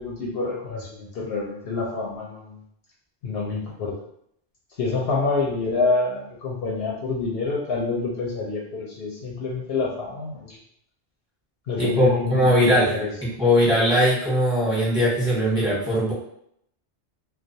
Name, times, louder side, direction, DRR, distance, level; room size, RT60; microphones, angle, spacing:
voice 1, 0.0-2.6 3.2-3.9 4.8-10.6 11.7-13.1, left 3 dB, 65° left, -4 dB, 0.7 m, -27 dB
voice 2, 11.8-12.9 13.2-16.1, equal, 5° right, -8 dB, 0.9 m, -20 dB
2.3 x 2.2 x 2.6 m, 0.70 s
omnidirectional pair, 1.2 m